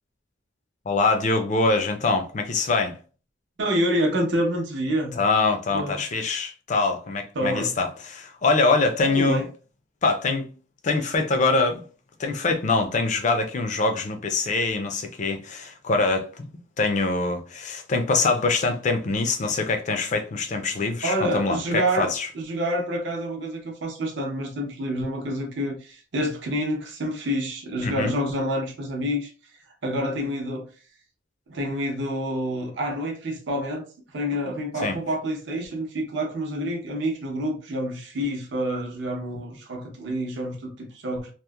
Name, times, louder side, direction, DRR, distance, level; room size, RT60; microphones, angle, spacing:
voice 1, 0.9-3.0 5.2-9.5 10.0-10.5 10.8-11.8 12.2-16.5 16.8-22.3 27.8-28.2 34.8-35.0, left 3 dB, 35° left, 0.4 m, -24 dB
voice 2, 3.6-5.2 5.7-6.0 7.4-7.7 9.0-9.5 21.0-22.1 22.3-29.3 29.8-30.7 31.5-33.8 34.1-41.3, equal, 60° right, 0.6 m, -27 dB
2.9 x 2.0 x 2.2 m
head